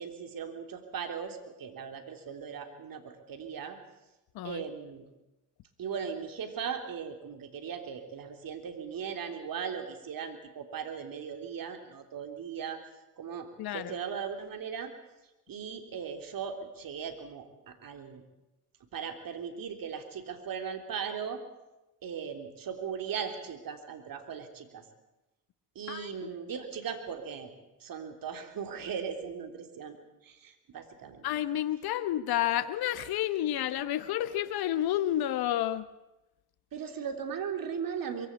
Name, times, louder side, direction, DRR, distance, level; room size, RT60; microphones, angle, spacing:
voice 1, 0.0-3.8 4.4-5.0 5.8-12.8 13.2-14.9 15.5-18.2 18.9-21.4 22.0-24.8 25.7-27.5 27.8-30.0 30.2-31.2 36.7-38.3, right 7 dB, 55° right, 6 dB, 3.4 m, -38 dB
voice 2, 13.6-13.9 25.9-26.3 31.2-35.9, left 12 dB, 65° left, 14 dB, 1.1 m, -30 dB
22.5 x 16.5 x 8.3 m, 0.99 s
hypercardioid pair, 60°, 40 cm